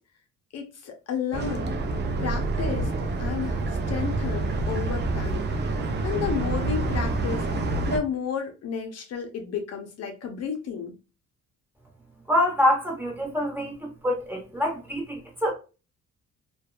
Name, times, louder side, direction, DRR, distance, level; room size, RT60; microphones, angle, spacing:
voice 1, 0.5-1.8 2.2-2.9 3.2-7.5 7.9-11.0, left 6 dB, 55° left, 0.6 m, -32 dB
sound 1, 1.3-8.0, right 2 dB, 35° right, 0.5 m, -27 dB
voice 2, 12.3-15.5, left 1 dB, 5° right, 1.0 m, -25 dB
2.7 x 2.2 x 2.2 m
cardioid pair, 90°, 30 cm